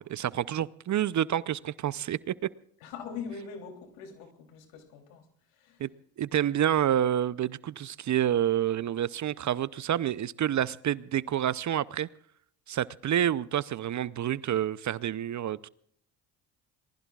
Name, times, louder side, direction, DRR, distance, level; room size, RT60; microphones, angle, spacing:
voice 1, 0.0-2.3 5.8-5.9 6.2-12.1 12.7-15.7, right 10 dB, 40° right, 0.6 m, -28 dB
voice 2, 2.8-5.2 5.5-5.8, left 6 dB, 80° left, 3.3 m, -42 dB
27.0 x 20.0 x 2.4 m
hypercardioid pair, 60°, 47 cm